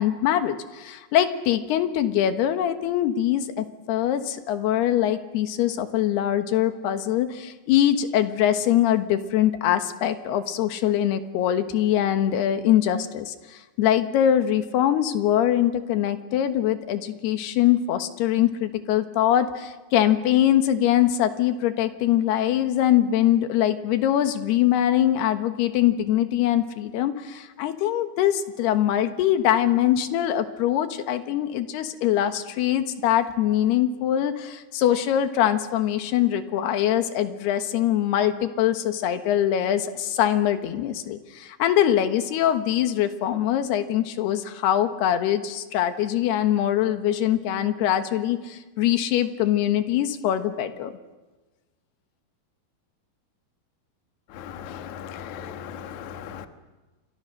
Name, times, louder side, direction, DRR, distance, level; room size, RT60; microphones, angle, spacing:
voice 1, 0.0-50.9, left 11 dB, 85° left, 9 dB, 3.4 m, -23 dB
voice 2, 54.3-56.5, left 8 dB, 60° left, 8 dB, 2.4 m, -37 dB
30.0 x 26.0 x 6.6 m, 1.2 s
omnidirectional pair, 4.6 m